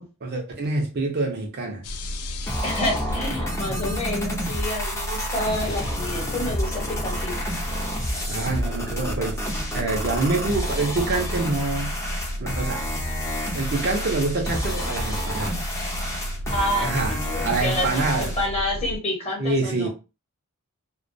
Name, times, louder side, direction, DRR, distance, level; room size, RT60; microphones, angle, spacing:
voice 1, 0.2-1.8 8.2-11.9 12.4-12.8 13.5-15.6 16.8-17.2 17.4-18.3 19.4-19.9, right 3 dB, 50° right, 0.5 m, -26 dB
sound 1, 1.8-19.0, equal, 80° left, 0.4 m, -32 dB
sound 2, 2.5-18.5, equal, 15° left, 0.5 m, -30 dB
voice 2, 2.6-7.4 16.5-19.9, left 1 dB, 30° left, 0.9 m, -29 dB
2.2 x 2.2 x 2.5 m
head